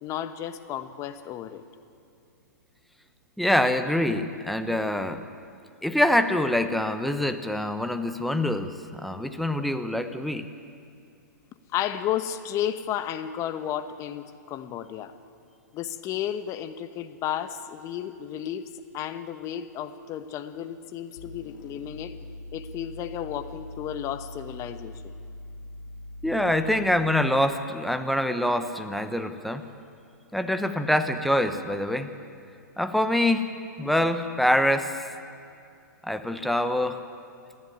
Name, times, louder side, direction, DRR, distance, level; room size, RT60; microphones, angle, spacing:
voice 1, 0.0-1.6 11.7-15.1 15.7-18.6 18.9-22.1 22.5-25.2, left 10 dB, 30° left, 10 dB, 1.2 m, -33 dB
voice 2, 3.4-5.2 5.8-10.5 26.2-29.7 30.3-32.1 32.8-34.9 36.0-37.0, left 1 dB, ahead, 8 dB, 1.0 m, -25 dB
sound 1, 21.2-27.3, left 2 dB, 75° left, 1.5 m, -42 dB
28.0 x 11.0 x 9.3 m, 2.4 s
hypercardioid pair, 125°, 10 cm